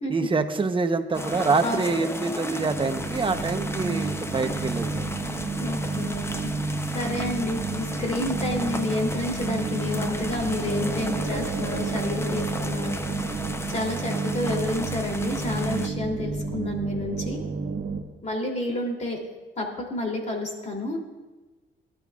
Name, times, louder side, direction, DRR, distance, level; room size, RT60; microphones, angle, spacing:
voice 1, 0.1-5.1, right 4 dB, 25° right, 6 dB, 1.0 m, -26 dB
sound 1, 1.1-15.9, left 2 dB, 10° left, 0.7 m, -35 dB
sound 2, 2.6-18.0, right 4 dB, 90° right, 1.5 m, -30 dB
voice 2, 5.5-6.5 6.9-12.9 13.7-17.4 18.2-19.2 19.6-21.0, left 2 dB, 35° left, 1 dB, 3.2 m, -30 dB
19.5 x 12.0 x 2.5 m, 1.2 s
cardioid pair, 90°, 20 cm